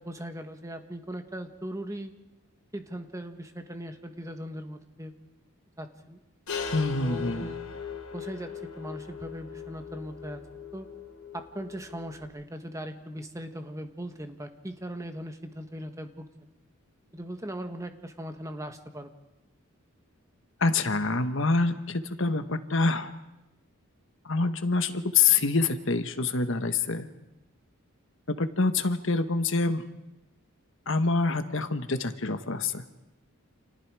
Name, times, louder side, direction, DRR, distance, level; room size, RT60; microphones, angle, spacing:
voice 1, 0.0-2.1 2.7-5.1 5.8-6.2 7.0-7.8 8.1-10.9 11.3-16.5 17.1-19.1, equal, 15° right, 6 dB, 1.4 m, -39 dB
sound 1, 6.5-12.2, left 6 dB, 75° left, 3.6 m, -39 dB
voice 2, 6.7-7.5 20.6-23.1 24.2-27.1 28.3-29.8 30.9-32.8, left 4 dB, 60° left, 9 dB, 1.4 m, -26 dB
30.0 x 28.0 x 4.9 m, 0.97 s
head